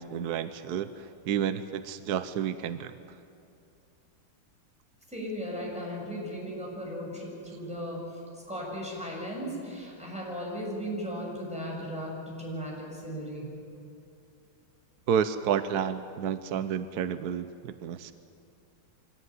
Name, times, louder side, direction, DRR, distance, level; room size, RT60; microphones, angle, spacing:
voice 1, 0.0-2.9 15.1-18.1, right 8 dB, 65° right, 11 dB, 1.2 m, -30 dB
voice 2, 5.1-8.2 8.5-13.5, equal, 5° right, -4 dB, 7.2 m, -36 dB
25.0 x 18.0 x 9.7 m, 2.6 s
omnidirectional pair, 2.0 m